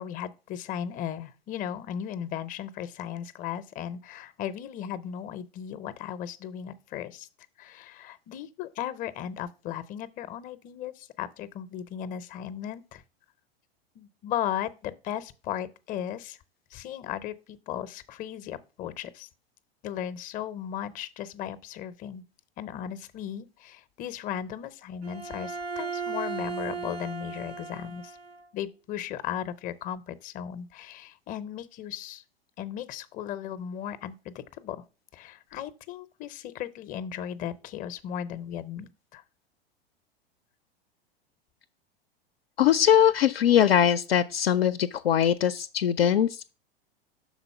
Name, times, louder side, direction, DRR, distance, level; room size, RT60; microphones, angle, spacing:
voice 1, 0.0-7.3 7.6-13.0 14.0-16.4 16.7-19.3 19.8-22.2 22.6-28.2 28.5-32.2 32.6-34.8 35.1-39.2, left 10 dB, 25° left, 0.6 m, -36 dB
Bowed string instrument, 25.0-28.5, right 5 dB, 80° right, 0.7 m, -36 dB
voice 2, 42.6-46.5, left 9 dB, 75° left, 0.4 m, -22 dB
6.1 x 4.0 x 5.6 m
figure-of-eight pair, 90°, 31 cm